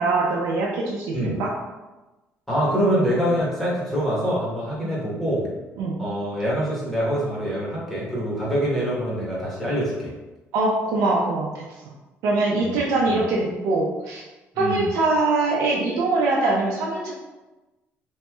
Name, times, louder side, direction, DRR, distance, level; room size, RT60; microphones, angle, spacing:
voice 1, 0.0-1.5 4.8-4.9 5.8-5.9 10.5-11.7 12.2-14.2 14.6-17.1, right 2 dB, 90° right, -4 dB, 0.5 m, -23 dB
voice 2, 2.5-5.5 6.0-10.1 12.6-12.8 13.1-13.2 14.5-14.9, equal, 5° left, -7 dB, 1.0 m, -25 dB
3.1 x 2.9 x 2.2 m, 1.1 s
cardioid pair, 125°, 5 cm